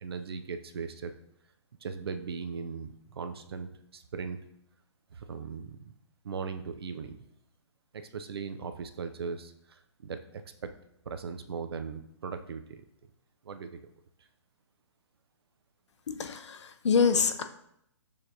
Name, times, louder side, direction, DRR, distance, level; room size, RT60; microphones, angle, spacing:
voice 1, 0.0-1.1 1.8-4.4 5.1-5.9 6.2-7.2 7.9-10.7 11.1-12.9 13.4-13.8, right 5 dB, 55° right, 9 dB, 0.4 m, -38 dB
voice 2, 16.1-17.4, left 5 dB, 70° left, 8 dB, 0.5 m, -26 dB
6.4 x 2.8 x 2.6 m, 0.76 s
hypercardioid pair, 175°, 15 cm